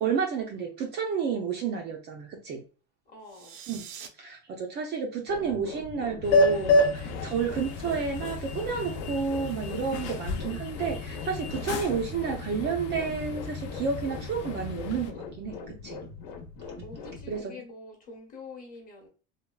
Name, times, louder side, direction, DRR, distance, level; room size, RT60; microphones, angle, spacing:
voice 1, 0.0-2.6 3.7-3.8 4.2-16.0 17.3-17.5, right 6 dB, 30° right, 0.4 m, -31 dB
voice 2, 3.1-3.6 16.8-19.1, left 3 dB, 25° left, 0.9 m, -46 dB
sound 1, 3.2-4.1, right 8 dB, 85° right, 0.6 m, -44 dB
sound 2, 5.3-17.4, left 4 dB, 65° left, 0.9 m, -42 dB
sound 3, 6.2-15.1, left 1 dB, 85° left, 0.6 m, -29 dB
3.3 x 2.2 x 2.2 m
cardioid pair, 160°, 33 cm